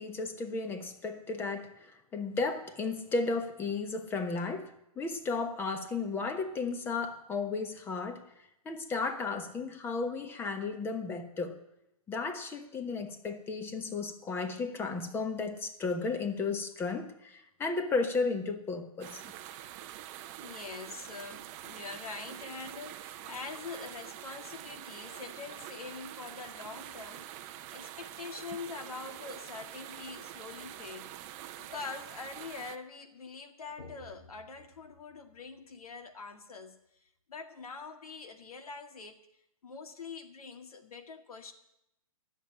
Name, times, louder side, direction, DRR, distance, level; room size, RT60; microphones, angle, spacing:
voice 1, 0.0-8.2 8.6-11.6 12.1-19.2, left 4 dB, 10° left, 8 dB, 1.1 m, -34 dB
sound 1, 19.0-32.8, right 13 dB, 25° right, 0.7 m, -46 dB
voice 2, 20.4-27.4 27.7-31.1 31.6-36.8 37.3-39.2 39.6-41.5, left 4 dB, 80° left, 6 dB, 2.1 m, -44 dB
12.5 x 7.3 x 10.0 m, 0.84 s
hypercardioid pair, 150°, 19 cm